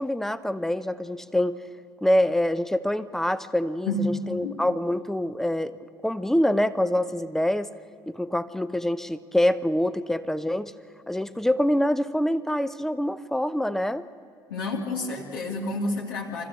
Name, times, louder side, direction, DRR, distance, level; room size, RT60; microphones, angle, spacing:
voice 1, 0.0-1.6 2.0-5.7 6.0-7.7 8.1-10.7 11.1-14.1, left 1 dB, 5° left, 14 dB, 0.8 m, -25 dB
voice 2, 3.9-4.6 14.5-16.5, left 2 dB, 75° left, -1 dB, 2.6 m, -29 dB
25.0 x 14.5 x 7.9 m, 2.5 s
figure-of-eight pair, 60°, 12 cm